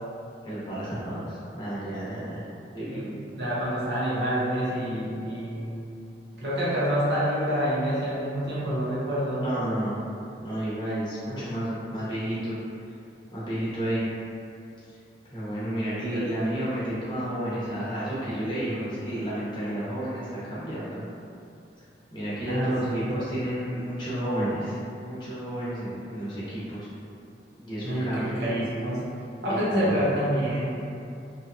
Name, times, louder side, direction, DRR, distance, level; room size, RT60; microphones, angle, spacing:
voice 1, 0.4-2.4 2.7-3.5 9.4-10.0 10.4-12.6 13.3-14.1 15.3-21.0 22.1-26.9 27.5-28.5 29.5-30.1, right 1 dB, 25° left, -10 dB, 0.8 m, -31 dB
voice 2, 3.3-5.8 6.4-9.4 11.3-11.5 22.4-22.9 27.8-29.0 29.4-30.7, equal, 65° right, -9 dB, 0.8 m, -27 dB
2.7 x 2.4 x 2.4 m, 2.5 s
head